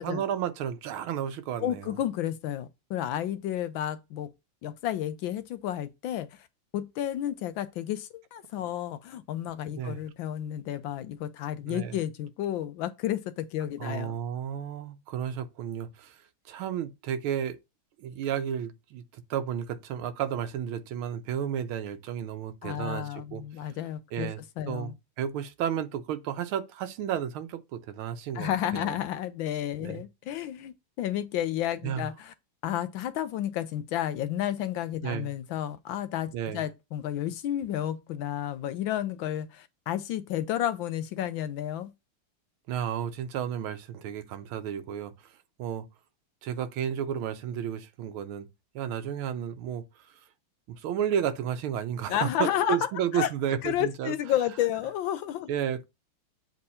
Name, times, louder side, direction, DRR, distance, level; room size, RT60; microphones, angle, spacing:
voice 1, 0.0-2.0 9.8-10.0 11.7-12.0 13.8-16.1 16.5-17.6 18.0-23.4 24.1-24.4 24.7-29.0 29.8-30.0 31.8-32.1 35.0-35.3 36.3-36.6 42.7-45.1 45.6-45.9 46.4-48.5 48.7-49.8 50.8-54.1 55.5-55.8, right 9 dB, 75° right, 1.6 m, -32 dB
voice 2, 1.6-4.3 4.6-6.3 6.7-14.2 22.6-24.9 28.3-32.3 32.6-41.9 52.1-53.3 53.6-55.5, left 11 dB, 75° left, 1.2 m, -31 dB
7.6 x 3.5 x 4.2 m
omnidirectional pair, 2.3 m